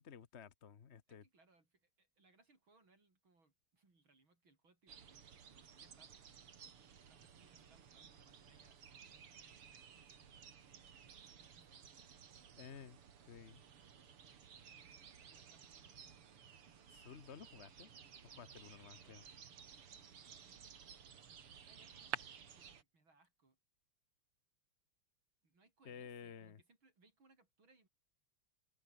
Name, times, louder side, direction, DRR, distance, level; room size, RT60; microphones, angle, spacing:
voice 1, 0.0-1.2 12.6-13.0 13.3-13.6 16.9-17.9 18.2-19.2 25.8-26.6, left 7 dB, 40° left, 1.0 m, -54 dB
voice 2, 1.1-6.5 7.1-12.4 14.8-16.2 18.3-23.6 25.4-27.9, right 3 dB, 65° right, 6.1 m, -73 dB
spring in the woods - rear, 4.9-22.8, right 7 dB, 80° right, 3.1 m, -55 dB
open air
omnidirectional pair, 2.4 m